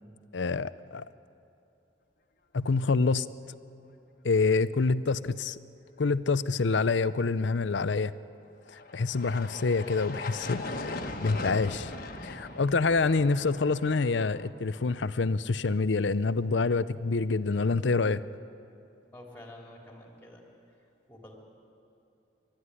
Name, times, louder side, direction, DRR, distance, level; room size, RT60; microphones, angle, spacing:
voice 1, 0.3-1.0 2.5-3.3 4.2-5.6 6.0-8.1 8.7-10.9 11.2-11.9 12.2-18.2, left 4 dB, 70° left, 15 dB, 0.6 m, -27 dB
sound 1, 8.7-14.5, left 2 dB, 50° left, 1.5 m, -39 dB
voice 2, 19.1-20.4 21.1-21.3, left 1 dB, 10° left, 0 dB, 3.4 m, -48 dB
30.0 x 13.0 x 9.9 m, 2.8 s
head